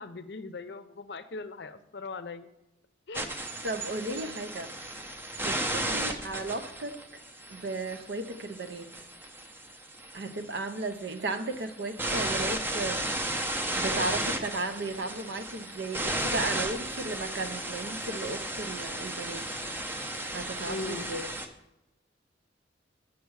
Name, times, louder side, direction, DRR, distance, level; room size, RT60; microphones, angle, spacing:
voice 1, 0.0-2.5 3.1-3.3 4.0-4.5 5.8-6.2 20.7-21.1, left 3 dB, 60° left, 12 dB, 0.6 m, -40 dB
sound 1, 3.1-21.5, right 1 dB, 10° right, 0.6 m, -34 dB
voice 2, 3.6-4.7 5.4-7.0 7.5-8.9 10.1-13.2 13.8-19.4 20.3-21.3, right 2 dB, 65° right, 9 dB, 0.6 m, -35 dB
8.4 x 6.1 x 4.7 m, 0.95 s
head